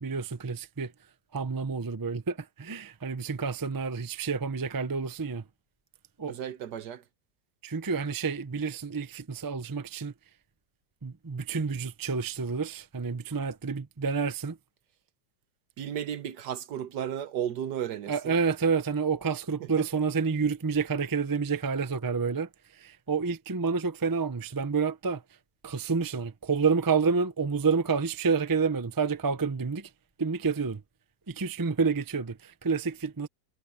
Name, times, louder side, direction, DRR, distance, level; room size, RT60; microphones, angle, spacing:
voice 1, 0.0-0.9 1.3-5.4 6.2-6.4 7.6-10.1 11.0-14.6 18.1-25.2 25.6-29.9 30.2-30.8 31.3-33.3, right 5 dB, 25° right, 0.4 m, -29 dB
voice 2, 6.3-7.0 15.8-18.4 19.6-19.8, right 10 dB, 75° right, 1.5 m, -34 dB
omnidirectional pair, 1.8 m